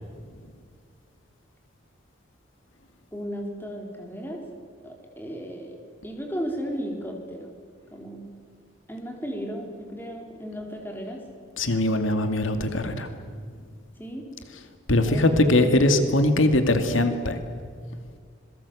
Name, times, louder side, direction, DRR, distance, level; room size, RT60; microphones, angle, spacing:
voice 1, 3.1-4.4 4.8-5.8 6.0-7.5 7.9-8.3 8.9-11.2 14.0-14.3 15.0-15.2 15.6-15.9, equal, 10° left, 2 dB, 4.1 m, -35 dB
voice 2, 11.6-13.1 14.9-17.4, left 1 dB, 80° left, 7 dB, 2.2 m, -21 dB
26.5 x 22.5 x 8.4 m, 2.1 s
head